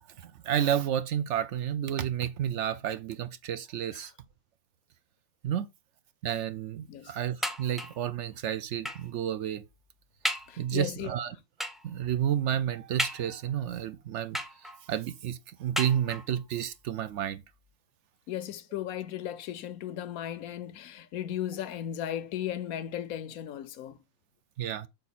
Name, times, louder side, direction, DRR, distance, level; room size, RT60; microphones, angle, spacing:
voice 1, 0.2-4.1 5.4-5.7 6.2-9.6 10.6-11.3 11.8-14.4 14.9-17.4 24.6-24.9, right 10 dB, 65° right, 0.8 m, -31 dB
sound 1, 7.4-8.1 8.8-9.2 9.7-9.8 10.2-10.6 11.6-11.9 13.0-13.6 14.3-14.9 15.7-16.4 17.2-17.3 17.7-17.8, equal, ahead, 0.4 m, -35 dB
voice 2, 10.5-11.1 18.3-24.0, left 11 dB, 85° left, 1.2 m, -36 dB
6.6 x 4.9 x 4.1 m
omnidirectional pair, 1.5 m